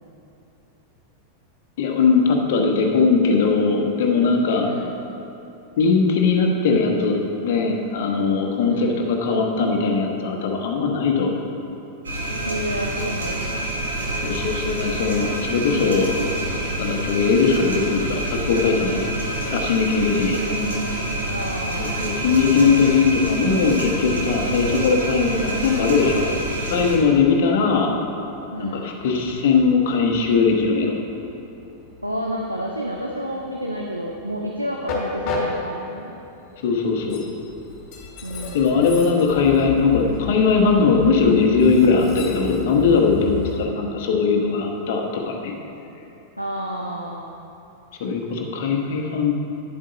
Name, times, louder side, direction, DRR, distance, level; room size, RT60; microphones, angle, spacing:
voice 1, 1.8-4.7 5.8-11.3 14.2-16.1 16.8-19.1 19.5-20.4 21.8-26.4 26.6-27.9 28.6-31.0 36.6-37.3 38.5-45.5 48.0-49.3, left 4 dB, 55° left, 2 dB, 1.2 m, -20 dB
voice 2, 4.6-4.9 8.6-9.1 12.5-13.6 20.3-22.0 28.5-28.9 32.0-36.1 38.2-38.7 46.4-47.3, equal, 85° right, 0 dB, 0.6 m, -30 dB
sound 1, 12.0-27.0, right 1 dB, 70° right, 1.3 m, -27 dB
Train, 26.9-43.6, left 4 dB, 40° left, 2.0 m, -35 dB
9.9 x 7.6 x 4.1 m, 3.0 s
figure-of-eight pair, 90°, 0 cm